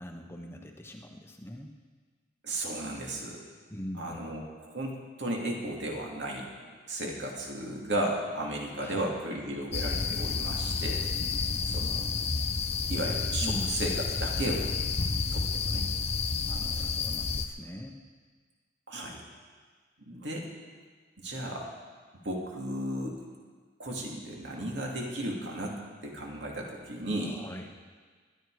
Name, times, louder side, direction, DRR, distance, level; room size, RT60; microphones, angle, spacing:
voice 1, 0.0-1.7 3.7-4.2 8.8-9.1 13.4-13.7 16.7-18.0 27.2-27.7, equal, 15° left, 2 dB, 0.9 m, -41 dB
voice 2, 2.4-3.4 4.0-11.1 11.6-12.1 12.9-14.6 15.3-15.9 16.5-16.9 18.9-19.2 20.0-20.5 21.2-21.7 22.2-23.2 23.8-27.4, right 1 dB, 65° right, -1 dB, 2.6 m, -35 dB
sound 1, 9.7-17.5, left 4 dB, 35° left, 0.6 m, -30 dB
20.5 x 11.0 x 4.9 m, 1.5 s
head